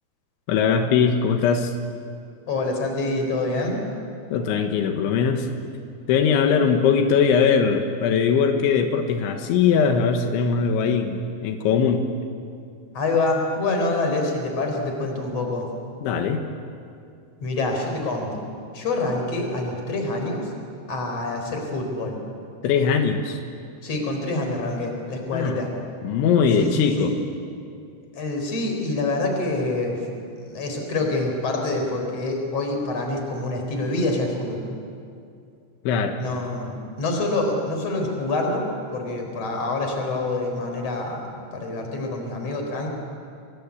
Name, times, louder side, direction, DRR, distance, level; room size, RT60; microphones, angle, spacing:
voice 1, 0.5-1.7 4.3-5.5 6.1-12.1 16.0-16.4 22.6-23.4 25.3-25.6 26.0-27.1 35.9-36.2, left 6 dB, 85° left, 5 dB, 3.8 m, -21 dB
voice 2, 2.5-3.8 12.9-15.7 17.4-20.5 20.9-22.2 23.8-25.7 26.6-27.2 28.1-30.0 30.4-34.6 36.2-38.6 38.9-41.2 41.5-42.9, left 2 dB, 35° left, 3 dB, 4.9 m, -26 dB
29.5 x 21.5 x 8.5 m, 2.4 s
omnidirectional pair, 5.3 m